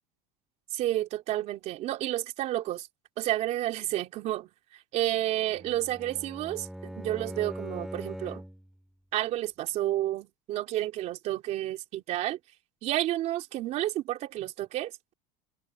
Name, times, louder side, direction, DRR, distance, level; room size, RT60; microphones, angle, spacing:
voice 1, 0.7-2.9 3.2-8.4 9.1-12.4 12.8-15.1, right 14 dB, 40° right, 3.5 m, -31 dB
Bowed string instrument, 5.5-8.7, equal, ahead, 4.8 m, -41 dB
open air
cardioid pair, 160°, 17 cm